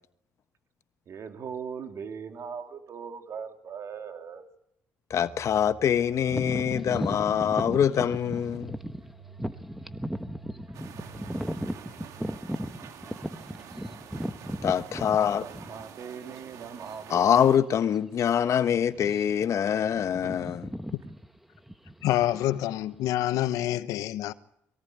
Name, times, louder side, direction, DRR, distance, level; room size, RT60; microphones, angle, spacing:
voice 1, 1.1-4.5 15.4-17.6, right 6 dB, 60° right, 3.3 m, -39 dB
voice 2, 5.1-8.7 14.6-15.4 17.1-20.7, left 9 dB, 60° left, 1.2 m, -24 dB
sound 1, 5.1-12.8, right 4 dB, 40° right, 7.6 m, -52 dB
sound 2, 6.3-16.1 16.7-16.8 17.5-17.7 18.0-18.2 18.9-19.4 19.7-23.1, equal, 5° right, 1.4 m, -36 dB
sound 3, 10.7-17.6, right 8 dB, 75° right, 2.4 m, -47 dB
voice 3, 22.0-24.3, left 13 dB, 85° left, 1.0 m, -27 dB
22.5 x 18.0 x 9.5 m
supercardioid pair, 75°, 6 cm